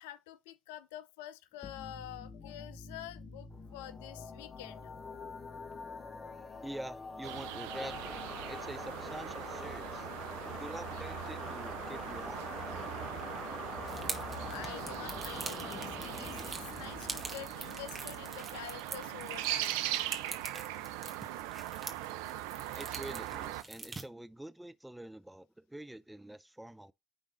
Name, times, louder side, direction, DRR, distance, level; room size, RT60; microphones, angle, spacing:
voice 1, 0.0-4.9 14.1-19.8, left 13 dB, 75° left, 0.5 m, -47 dB
sound 1, 1.6-20.1, left 4 dB, 35° left, 1.4 m, -45 dB
voice 2, 6.6-8.1 8.5-10.1 10.6-12.9 22.7-26.9, right 1 dB, 10° right, 0.6 m, -46 dB
sound 2, 7.2-23.6, right 14 dB, 75° right, 0.5 m, -40 dB
sound 3, 13.9-24.0, right 3 dB, 30° right, 1.6 m, -45 dB
9.9 x 3.7 x 4.1 m
hypercardioid pair, 55°, 0 cm